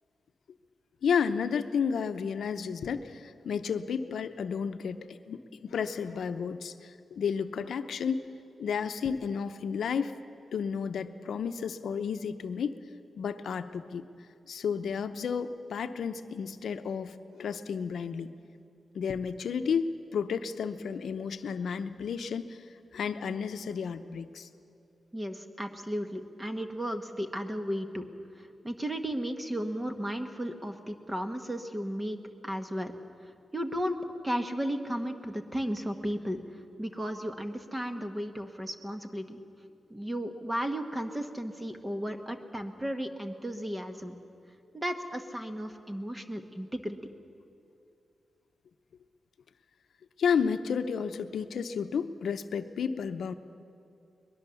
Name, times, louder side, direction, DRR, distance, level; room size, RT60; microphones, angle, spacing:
voice 1, 1.0-8.2 8.6-10.1 10.5-12.8 13.2-14.1 14.5-18.3 18.9-22.6 22.9-24.5 50.2-53.3, left 6 dB, 75° left, 9 dB, 0.8 m, -32 dB
voice 2, 25.1-28.1 28.3-32.2 32.4-32.9 33.5-36.4 36.8-39.4 39.9-44.2 44.7-47.0, equal, 10° right, 6 dB, 1.1 m, -34 dB
22.5 x 20.5 x 7.0 m, 2.5 s
wide cardioid pair, 170°, 0 cm